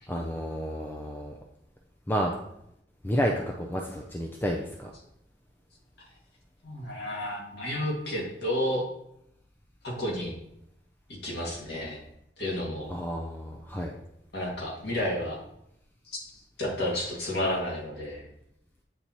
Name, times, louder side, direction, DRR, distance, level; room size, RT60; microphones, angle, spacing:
voice 1, 0.1-1.4 2.1-2.3 3.0-4.9 12.9-13.9, equal, 10° left, 1 dB, 0.4 m, -30 dB
voice 2, 6.6-8.8 9.8-10.3 11.1-12.0 12.4-12.9 14.3-15.4 16.1-18.2, left 1 dB, 65° left, -3 dB, 1.9 m, -31 dB
8.6 x 4.1 x 2.9 m, 0.77 s
head